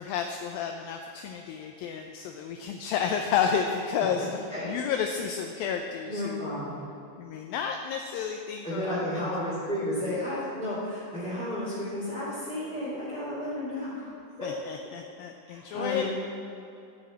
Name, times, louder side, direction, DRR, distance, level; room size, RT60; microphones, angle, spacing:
voice 1, 0.0-6.5 7.2-9.0 14.4-16.1, left 7 dB, 80° left, 4 dB, 2.2 m, -31 dB
voice 2, 4.2-4.8 6.1-6.8 8.6-14.1 14.4-14.5 15.5-16.1, left 1 dB, ahead, -12 dB, 2.4 m, -32 dB
12.0 x 6.3 x 8.6 m, 2.7 s
omnidirectional pair, 4.7 m